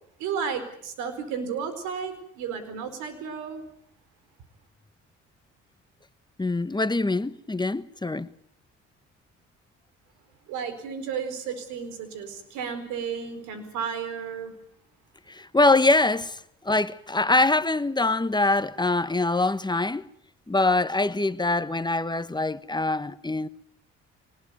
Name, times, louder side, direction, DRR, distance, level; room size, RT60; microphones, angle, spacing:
voice 1, 0.2-3.6 10.5-14.5, right 6 dB, 85° right, 4.5 m, -33 dB
voice 2, 6.4-8.3 15.3-20.1 20.5-23.5, left 2 dB, 15° left, 1.2 m, -24 dB
24.5 x 20.0 x 9.2 m
supercardioid pair, 65°, 29 cm